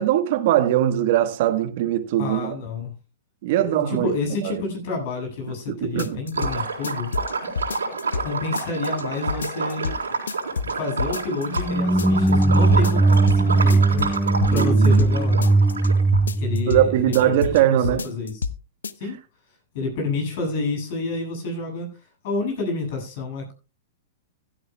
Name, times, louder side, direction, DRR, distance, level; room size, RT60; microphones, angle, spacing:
voice 1, 0.0-2.5 3.4-4.1 4.4-4.6 5.8-6.2 14.5-15.0 16.7-18.0, right 12 dB, 55° right, 1.4 m, -21 dB
voice 2, 2.2-2.9 3.5-7.1 8.2-10.0 10.6-14.1 14.5-15.4 16.4-18.5 18.9-19.2 19.7-21.9 22.2-23.5, left 3 dB, 55° left, 8.0 m, -29 dB
sound 1, 6.0-6.5 6.8-8.3 8.5-9.0 9.3-10.0 10.3-10.7 11.0-11.7 12.0-12.4 12.7-13.4 13.7-15.1 15.4-15.9 16.1-16.8 17.1-17.6 17.8-18.6 18.8-18.9, left 5 dB, 85° left, 0.7 m, -28 dB
Liquid, 6.3-16.2, right 4 dB, 90° right, 3.8 m, -29 dB
sound 2, 11.5-17.6, right 2 dB, ahead, 0.5 m, -19 dB
15.5 x 12.5 x 2.3 m
hypercardioid pair, 115°, 0 cm